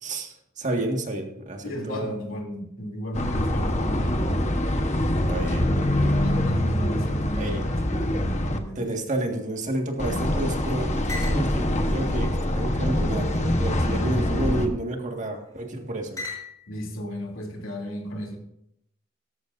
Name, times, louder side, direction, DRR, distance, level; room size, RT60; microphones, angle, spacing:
voice 1, 0.0-2.2 5.3-5.7 7.4-7.6 8.8-16.2, right 1 dB, 35° right, 2 dB, 1.9 m, -30 dB
voice 2, 1.6-4.6 6.1-8.8 16.7-18.4, equal, 70° left, 0 dB, 3.1 m, -34 dB
sound 1, 3.1-8.6 10.0-14.7, left 1 dB, 35° left, 1.2 m, -24 dB
sound 2, 8.6-10.2 10.5-10.6 11.1-11.5 12.2-13.1 13.9-14.3 15.2-15.6 16.2-16.8, left 3 dB, 15° left, 5.7 m, -41 dB
17.5 x 13.5 x 2.7 m, 0.76 s
head